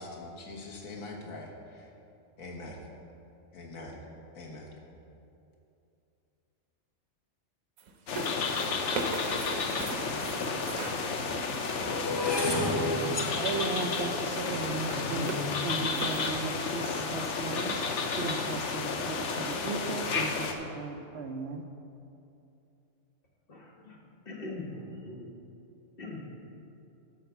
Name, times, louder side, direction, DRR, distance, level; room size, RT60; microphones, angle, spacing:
voice 1, 0.0-1.9 2.4-2.9 3.5-4.0 4.3-4.7, left 2 dB, 85° left, -1 dB, 1.7 m, -43 dB
sound 1, 7.8-11.9 13.2-14.2 14.6-15.5 15.9-16.3, right 3 dB, 90° right, 1.3 m, -39 dB
sound 2, 8.1-20.5, left 4 dB, 65° left, 1.0 m, -32 dB
sound 3, 10.0-10.1 10.8-17.0 17.7-18.0 18.3-18.7, left 1 dB, 25° left, 0.6 m, -34 dB
voice 2, 13.4-21.6, right 4 dB, 60° right, 5 dB, 0.9 m, -36 dB
voice 3, 23.5-25.3 26.0-26.3, left 2 dB, 45° left, -2 dB, 1.7 m, -42 dB
12.0 x 4.5 x 7.0 m, 2.7 s
omnidirectional pair, 1.4 m